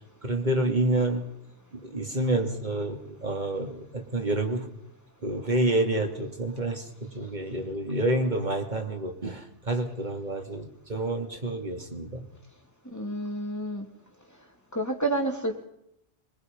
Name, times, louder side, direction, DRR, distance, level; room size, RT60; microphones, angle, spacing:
voice 1, 0.2-1.2 1.7-4.7 5.2-12.2, right 1 dB, 45° right, 4 dB, 3.0 m, -28 dB
voice 2, 12.9-13.9 14.7-15.6, right 1 dB, 15° left, 3 dB, 2.9 m, -29 dB
27.0 x 21.5 x 5.5 m, 0.78 s
omnidirectional pair, 1.0 m